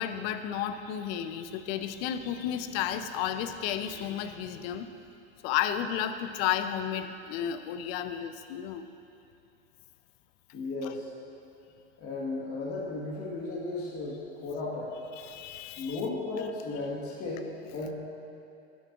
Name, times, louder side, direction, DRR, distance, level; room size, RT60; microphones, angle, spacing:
voice 1, 0.0-4.9 5.4-8.9 10.8-10.9 15.1-16.0, left 10 dB, 65° left, 9 dB, 0.6 m, -32 dB
voice 2, 10.5-11.1 12.0-15.0 15.8-17.9, left 3 dB, 45° left, -4 dB, 1.5 m, -35 dB
11.5 x 9.3 x 2.4 m, 2.6 s
hypercardioid pair, 85°, 33 cm